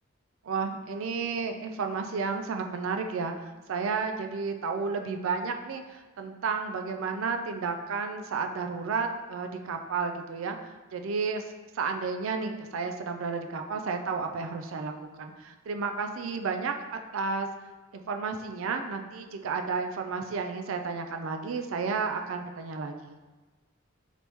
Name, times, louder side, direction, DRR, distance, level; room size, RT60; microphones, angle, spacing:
voice 1, 0.4-10.6 10.9-11.4 11.7-14.9 15.2-17.5 17.9-23.1, right 5 dB, 75° right, 5 dB, 0.4 m, -32 dB
4.1 x 3.4 x 3.0 m, 1.2 s
head